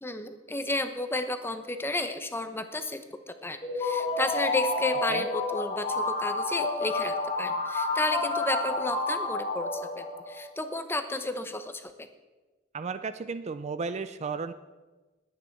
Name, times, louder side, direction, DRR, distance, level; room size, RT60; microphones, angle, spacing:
voice 1, 0.0-3.0 3.3-12.1, left 2 dB, 10° left, 9 dB, 0.8 m, -32 dB
sound 1, 3.6-10.4, left 2 dB, 25° left, 2.6 m, -30 dB
voice 2, 12.7-14.5, right 4 dB, 35° right, 12 dB, 0.4 m, -34 dB
20.0 x 8.9 x 4.6 m, 1.2 s
head